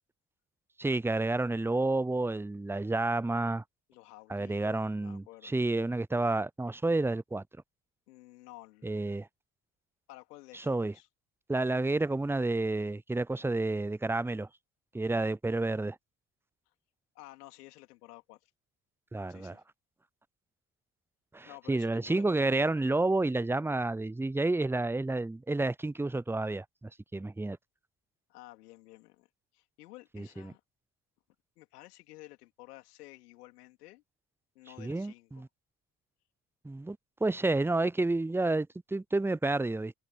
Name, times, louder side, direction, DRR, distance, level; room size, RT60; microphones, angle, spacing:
voice 1, 0.8-3.6 4.3-7.4 8.8-9.3 10.7-10.9 11.5-14.5 14.9-16.0 19.1-19.6 21.3-26.6 27.1-27.6 30.1-30.5 34.8-35.5 36.6-39.9, right 2 dB, 5° right, 0.5 m, -30 dB
voice 2, 3.9-5.5 8.1-8.9 10.1-11.1 17.2-18.5 19.3-19.6 21.4-22.7 28.3-29.3 29.5-30.6 31.6-34.0 34.6-35.4, left 18 dB, 85° left, 3.5 m, -52 dB
hypercardioid pair, 50°, 45 cm